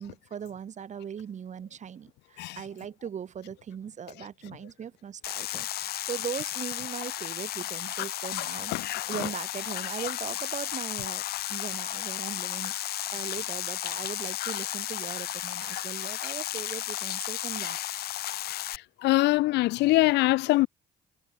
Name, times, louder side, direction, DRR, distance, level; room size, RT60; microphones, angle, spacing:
voice 1, 0.0-8.7 9.1-11.2 11.5-17.9, right 8 dB, 45° right, 6.1 m, -39 dB
sound 1, 5.2-18.8, left 14 dB, 70° left, 2.0 m, -34 dB
voice 2, 8.4-9.3 19.0-20.7, left 19 dB, 85° left, 2.6 m, -24 dB
cardioid pair, 110°, 17 cm